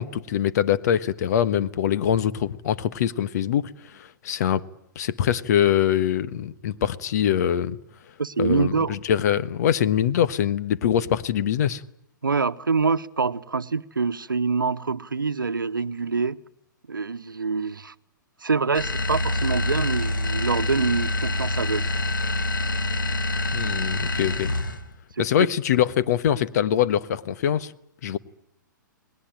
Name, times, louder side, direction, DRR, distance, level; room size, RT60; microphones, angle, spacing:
voice 1, 0.0-4.6 4.9-7.8 8.4-11.8 23.5-24.5 25.2-27.7 28.0-28.2, left 10 dB, 55° left, 1.3 m, -23 dB
voice 2, 8.2-9.0 12.2-16.4 16.9-17.9 18.4-21.9 25.2-25.5, right 4 dB, 85° right, 1.0 m, -25 dB
sound 1, 18.7-24.9, left 2 dB, 80° left, 2.3 m, -26 dB
29.5 x 20.0 x 9.1 m
figure-of-eight pair, 120°, 11 cm